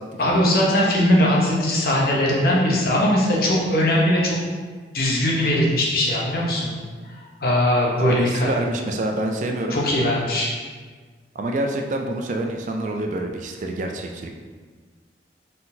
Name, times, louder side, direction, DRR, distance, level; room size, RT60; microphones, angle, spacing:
voice 1, 0.2-4.4 4.9-6.8 7.4-8.6 9.7-10.5, left 1 dB, 55° left, -3 dB, 0.8 m, -20 dB
voice 2, 8.1-9.8 11.4-14.3, right 1 dB, 40° right, 3 dB, 0.3 m, -26 dB
4.0 x 3.9 x 2.7 m, 1.5 s
head